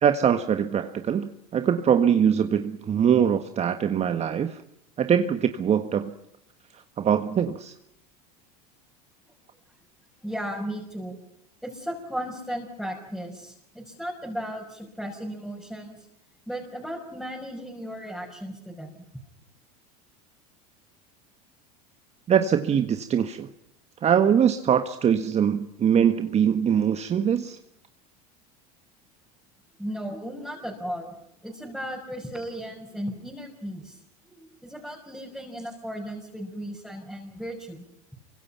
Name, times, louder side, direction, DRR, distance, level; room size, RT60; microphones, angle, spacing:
voice 1, 0.0-4.6 5.0-6.1 7.0-7.7 22.3-23.5 24.0-27.6, right 8 dB, 35° right, 9 dB, 1.6 m, -22 dB
voice 2, 10.2-11.2 11.6-16.1 16.5-18.9 29.8-31.1 31.4-34.0 34.3-37.8, equal, ahead, -2 dB, 5.8 m, -35 dB
28.0 x 24.5 x 5.8 m, 0.77 s
supercardioid pair, 100°, 19 cm